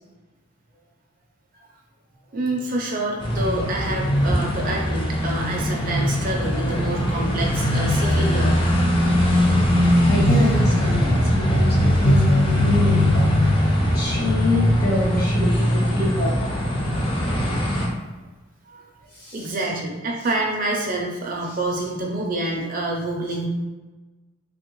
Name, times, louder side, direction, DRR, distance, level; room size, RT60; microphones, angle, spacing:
voice 1, 2.3-8.6 16.8-17.2 18.7-18.8 19.3-23.5, right 2 dB, 40° right, 0 dB, 0.4 m, -27 dB
sound 1, 3.2-17.9, equal, 25° left, 0.4 m, -20 dB
voice 2, 10.1-13.6 13.9-16.6 19.1-19.6 21.4-21.6, left 1 dB, 45° left, -5 dB, 1.0 m, -26 dB
3.4 x 2.1 x 3.0 m, 1.2 s
head